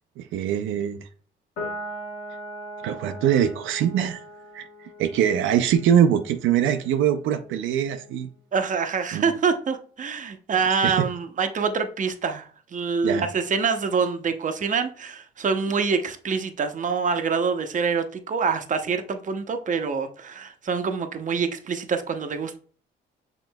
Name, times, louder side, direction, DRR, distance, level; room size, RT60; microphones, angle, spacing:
voice 1, 0.2-1.1 2.8-4.2 4.5-8.3 9.1-9.3 10.8-11.1 13.0-13.3, right 9 dB, 85° right, 0.5 m, -23 dB
Piano, 1.6-8.3, equal, 90° left, 2.2 m, -40 dB
voice 2, 8.5-22.6, right 5 dB, 40° right, 0.7 m, -26 dB
6.2 x 3.8 x 2.2 m
cardioid pair, 90°, 20 cm